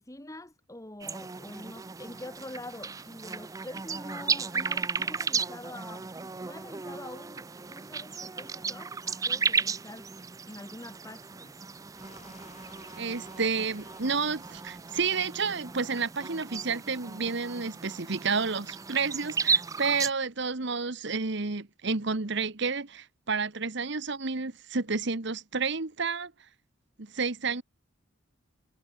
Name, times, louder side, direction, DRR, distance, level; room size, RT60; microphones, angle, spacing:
voice 1, 0.0-10.2 10.5-11.6, left 1 dB, 15° left, 1.8 m, -45 dB
sound 1, 1.0-20.1, right 5 dB, 15° right, 0.3 m, -34 dB
sound 2, 11.9-16.3, left 3 dB, 35° left, 4.2 m, -55 dB
voice 2, 13.0-26.3 27.0-27.6, right 4 dB, 55° right, 1.2 m, -30 dB
head